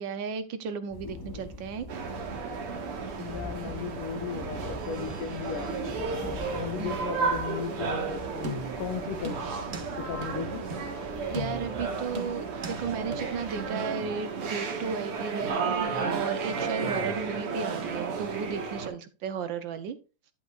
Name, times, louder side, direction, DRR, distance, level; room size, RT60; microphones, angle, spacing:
voice 1, 0.0-1.9 6.8-7.0 11.3-20.0, right 6 dB, 70° right, 1.3 m, -34 dB
sound 1, 0.9-13.7, left 1 dB, 20° left, 0.6 m, -44 dB
sound 2, 1.9-18.9, right 5 dB, 85° right, 2.4 m, -33 dB
voice 2, 3.2-5.9 6.2-8.5 8.8-9.5 10.0-10.7, left 7 dB, 90° left, 2.1 m, -36 dB
sound 3, 8.4-8.9 9.2-9.9 10.2-10.3 10.7-10.9 11.3-11.8 12.1-12.8 13.1-13.2, left 1 dB, 35° right, 1.2 m, -38 dB
10.5 x 7.9 x 2.4 m
omnidirectional pair, 2.4 m